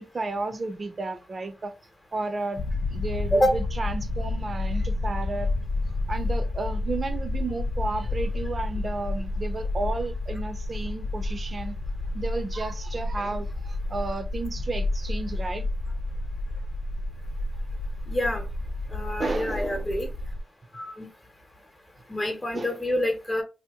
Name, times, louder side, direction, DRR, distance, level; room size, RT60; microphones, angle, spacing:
voice 1, 0.0-1.7 2.1-2.6 2.9-5.5 6.1-11.8 12.1-15.7 19.2-19.9 22.5-22.8, right 3 dB, 45° right, 0.6 m, -32 dB
sound 1, 2.6-20.4, left 2 dB, 70° left, 0.3 m, -30 dB
voice 2, 18.1-18.4 18.9-20.1 20.7-21.1 22.1-23.4, left 1 dB, 20° left, 0.9 m, -26 dB
2.8 x 2.1 x 3.4 m
cardioid pair, 60°, 0 cm